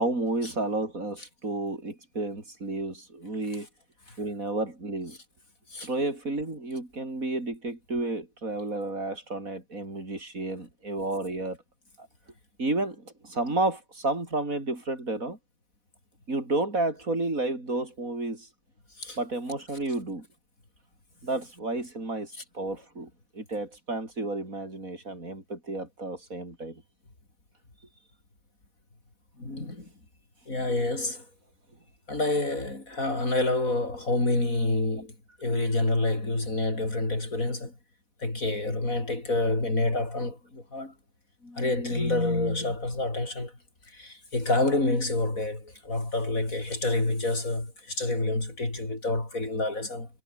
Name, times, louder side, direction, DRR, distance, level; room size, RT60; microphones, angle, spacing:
voice 1, 0.0-3.7 4.2-5.2 5.8-11.6 12.0-12.1 12.6-15.4 16.3-18.5 19.2-20.3 21.2-26.8, right 2 dB, 80° right, 6.3 m, -31 dB
voice 2, 29.4-29.9 30.5-31.3 32.1-37.8 38.2-40.9 41.4-43.6 43.9-50.1, left 2 dB, 80° left, 6.2 m, -28 dB
omnidirectional pair, 1.4 m